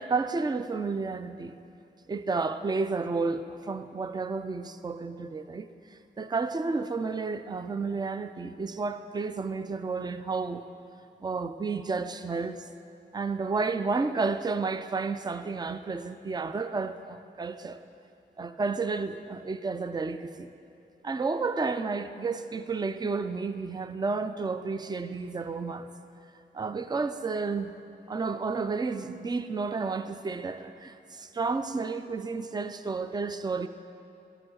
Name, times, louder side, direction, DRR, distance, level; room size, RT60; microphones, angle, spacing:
voice 1, 0.0-1.6 2.1-10.6 11.2-12.7 13.1-17.8 18.4-20.5 21.0-25.9 26.5-27.7 28.1-33.7, right 4 dB, 20° right, 10 dB, 0.4 m, -31 dB
10.5 x 8.9 x 3.8 m, 2.6 s
cardioid pair, 70°, 19 cm